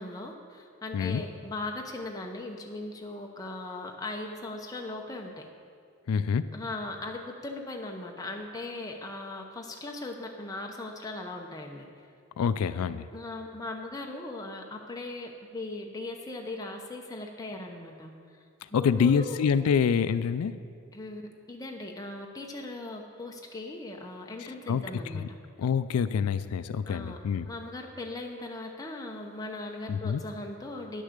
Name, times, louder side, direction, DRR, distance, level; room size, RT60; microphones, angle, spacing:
voice 1, 0.0-5.5 6.5-11.9 13.1-18.1 18.7-19.4 20.9-21.2 21.5-25.2 26.8-27.2 27.5-31.0, left 2 dB, 15° left, 1 dB, 0.8 m, -39 dB
voice 2, 6.1-6.5 12.4-13.1 18.7-20.6 24.7-25.3 25.6-27.5 29.9-30.2, left 6 dB, 90° left, 14 dB, 0.3 m, -26 dB
10.0 x 6.4 x 6.6 m, 2.2 s
head